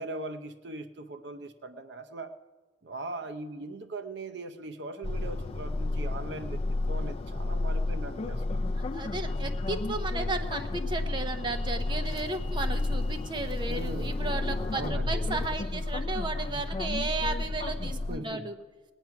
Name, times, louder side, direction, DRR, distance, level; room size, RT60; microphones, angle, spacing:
voice 1, 0.0-2.3 2.8-8.7 13.7-14.2 14.7-15.5 18.1-18.5, right 2 dB, 65° right, 9 dB, 0.7 m, -40 dB
sound 1, 5.0-18.2, left 2 dB, 30° left, 0.4 m, -31 dB
voice 2, 8.7-18.6, right 2 dB, 25° right, 6 dB, 0.9 m, -34 dB
19.0 x 9.2 x 5.9 m, 1.3 s
head